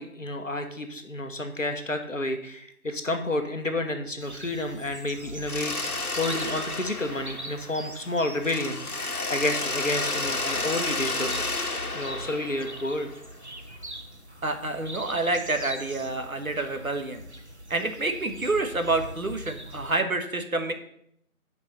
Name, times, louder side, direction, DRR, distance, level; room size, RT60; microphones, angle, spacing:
voice 1, 0.0-8.8 9.3-11.3 11.6-13.1, left 1 dB, 60° left, 5 dB, 1.2 m, -30 dB
sound 1, 4.2-20.0, right 1 dB, 50° right, 0.9 m, -42 dB
Mechanisms, 5.5-8.1 8.4-13.3, left 3 dB, 85° left, 1.4 m, -31 dB
voice 2, 14.4-17.2 17.7-20.7, right 2 dB, 70° right, 6 dB, 1.5 m, -28 dB
8.2 x 5.3 x 6.8 m, 0.71 s
figure-of-eight pair, 175°, 44 cm